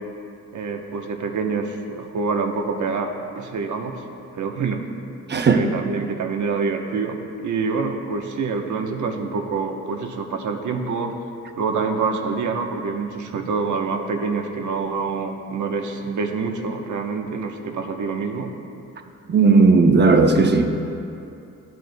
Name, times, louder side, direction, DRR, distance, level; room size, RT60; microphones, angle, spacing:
voice 1, 0.5-3.9 4.3-4.8 5.5-11.1 11.6-18.5, right 4 dB, 70° right, 3 dB, 1.0 m, -26 dB
voice 2, 5.3-5.6 19.3-20.7, right 4 dB, 35° right, 5 dB, 0.7 m, -15 dB
15.5 x 9.4 x 2.2 m, 2.6 s
wide cardioid pair, 130°, 31 cm